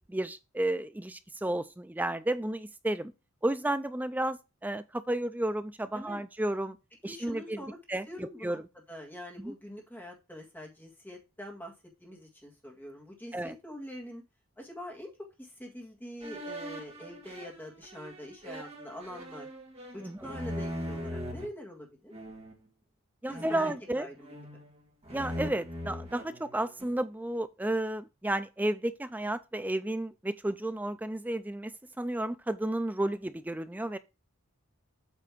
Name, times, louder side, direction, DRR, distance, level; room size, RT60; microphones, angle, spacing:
voice 1, 0.1-3.1 3.4-6.8 7.0-7.6 7.9-8.6 9.4-9.5 13.3-13.5 20.0-20.2 23.2-24.1 25.1-31.7 32.0-34.0, right 1 dB, 10° right, 0.4 m, -32 dB
voice 2, 7.1-7.8 8.1-8.6 8.9-11.7 12.0-14.2 14.6-19.5 19.9-22.1 23.3-24.3, equal, 10° left, 1.8 m, -44 dB
sound 1, 16.2-21.5 22.1-22.6 23.3-24.7 25.0-27.0, equal, 25° right, 1.9 m, -40 dB
8.3 x 3.4 x 6.0 m
head